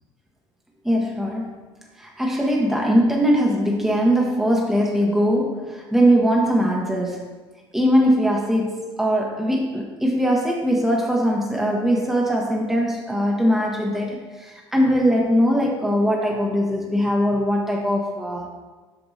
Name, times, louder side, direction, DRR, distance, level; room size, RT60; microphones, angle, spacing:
voice 1, 0.8-1.6 2.0-7.3 7.7-18.5, equal, 5° right, -1 dB, 1.1 m, -21 dB
8.2 x 5.9 x 2.8 m, 1.3 s
hypercardioid pair, 65°, 13 cm